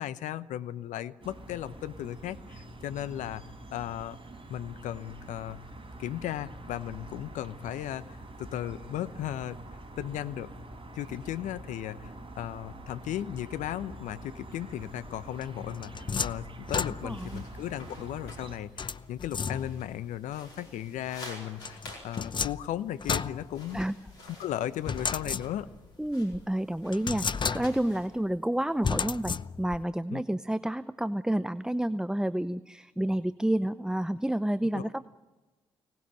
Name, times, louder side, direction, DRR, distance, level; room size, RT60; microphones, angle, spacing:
voice 1, 0.0-3.4 3.7-4.2 4.5-5.6 6.0-9.6 10.0-10.5 10.9-15.9 16.2-21.8 22.0-23.8 24.4-25.7 30.1-30.2 34.7-34.9, left 12 dB, 70° left, 15 dB, 0.9 m, -36 dB
sound 1, 1.2-18.6, right 1 dB, 40° right, 5.6 m, -46 dB
sound 2, 15.4-17.4 18.8-20.0 21.6-24.1 24.9-25.9 26.3-26.4 26.9-28.0 28.8-29.8, left 5 dB, 35° left, 0.7 m, -33 dB
sound 3, 17.0-28.1, left 1 dB, 90° left, 4.8 m, -51 dB
voice 2, 17.0-17.4 23.7-24.0 26.0-27.3 27.5-35.0, right 1 dB, 5° right, 15 dB, 0.7 m, -29 dB
24.5 x 19.0 x 9.0 m, 1.2 s
hypercardioid pair, 40°, 13 cm